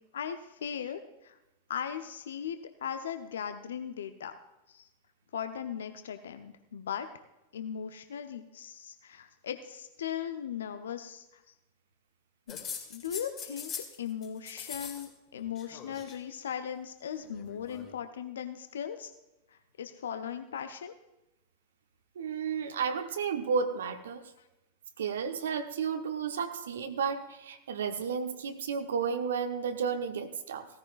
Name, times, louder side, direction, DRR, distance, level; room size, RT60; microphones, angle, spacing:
voice 1, 0.1-1.4 1.7-4.3 4.7-4.9 5.3-7.1 7.5-11.4 12.5-12.6 12.9-13.7 14.0-19.1 19.5-21.0, left 8 dB, 65° left, 9 dB, 0.7 m, -38 dB
sound 1, 12.5-14.0 14.2-15.1 15.3-16.2 17.2-17.9, left 7 dB, 30° left, 2.3 m, -42 dB
voice 2, 22.2-24.2 25.0-30.7, right 6 dB, 65° right, 7 dB, 0.9 m, -32 dB
17.0 x 14.5 x 2.5 m, 0.99 s
figure-of-eight pair, 90°, 0 cm